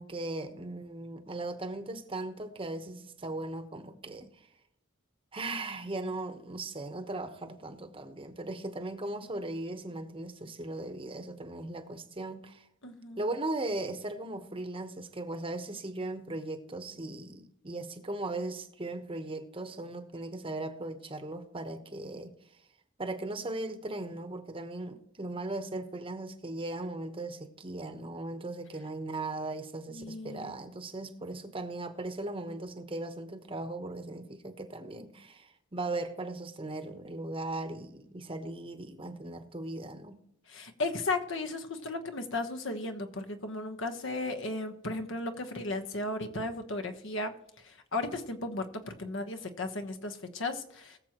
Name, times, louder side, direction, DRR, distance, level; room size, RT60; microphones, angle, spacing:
voice 1, 0.0-4.3 5.3-12.6 13.2-22.3 23.0-40.2, right 2 dB, 25° right, 1.0 m, -38 dB
voice 2, 12.8-13.3 29.9-30.5 40.5-47.3 47.6-51.0, left 2 dB, 65° left, 1.2 m, -35 dB
21.0 x 7.3 x 3.0 m
head